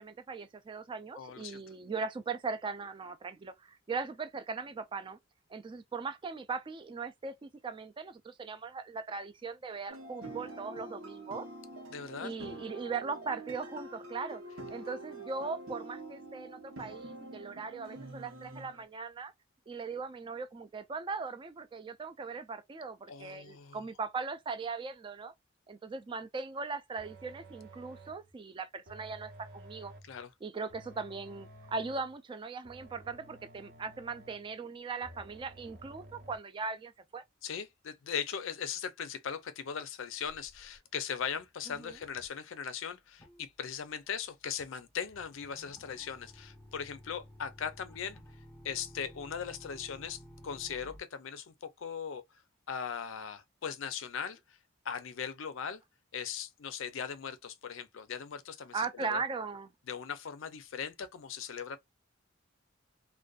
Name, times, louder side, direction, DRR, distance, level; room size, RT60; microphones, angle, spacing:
voice 1, 0.0-5.2 5.5-11.5 12.2-14.4 14.7-19.3 19.7-25.3 25.7-29.9 30.4-37.2 41.8-42.0 58.7-59.7, right 4 dB, 25° right, 0.3 m, -39 dB
voice 2, 1.2-1.6 11.9-12.3 23.1-23.8 30.1-30.3 37.4-48.2 48.6-52.2 52.7-54.6 54.8-55.8 56.1-59.2 59.9-61.8, left 7 dB, 70° left, 0.4 m, -39 dB
sound 1, 9.9-18.9, right 2 dB, 85° right, 0.8 m, -46 dB
sound 2, 27.0-28.3 28.9-30.2 30.7-32.1 32.6-34.6 35.0-36.4, right 1 dB, 55° right, 0.7 m, -53 dB
sound 3, 40.3-40.8 41.2-41.5 41.7-42.3 43.2-51.0, equal, 10° left, 0.8 m, -54 dB
2.5 x 2.2 x 2.3 m
head